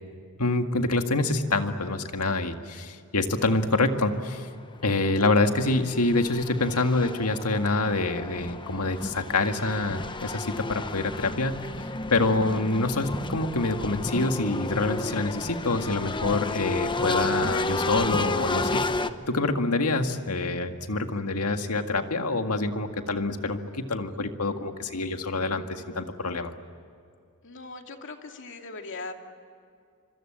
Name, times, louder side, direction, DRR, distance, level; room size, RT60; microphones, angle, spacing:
voice 1, 0.4-4.5 4.8-11.6 12.1-26.5, left 2 dB, 90° left, 6 dB, 1.9 m, -26 dB
sound 1, 4.4-4.5 5.0-19.1, left 2 dB, 20° left, 0.9 m, -32 dB
voice 2, 27.4-29.1, left 3 dB, 60° left, 4 dB, 2.5 m, -39 dB
25.5 x 25.5 x 8.9 m, 2.3 s
head